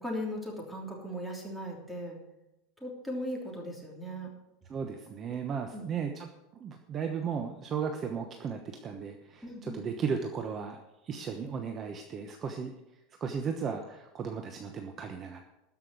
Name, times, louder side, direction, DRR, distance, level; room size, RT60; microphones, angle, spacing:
voice 1, 0.0-2.2 2.8-4.3 5.7-5.9 9.4-9.8, equal, ahead, -1 dB, 3.1 m, -38 dB
voice 2, 4.7-6.3 6.6-12.7 13.2-15.4, right 6 dB, 30° right, 5 dB, 1.0 m, -35 dB
13.0 x 5.9 x 9.4 m, 0.92 s
supercardioid pair, 145°, 0 cm